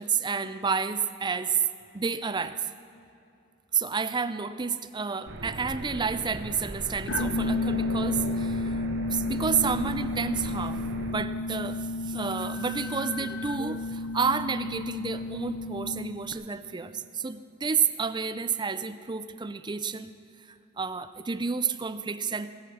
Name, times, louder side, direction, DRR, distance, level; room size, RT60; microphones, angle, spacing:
voice 1, 0.0-1.6 1.9-2.6 3.7-10.8 11.1-20.1 20.8-22.5, right 5 dB, 20° right, 12 dB, 0.5 m, -30 dB
sound 1, 5.3-11.1, right 2 dB, 60° right, 1.1 m, -38 dB
sound 2, 7.1-16.3, left 2 dB, 65° left, 0.9 m, -32 dB
19.0 x 8.4 x 7.4 m, 2.6 s
head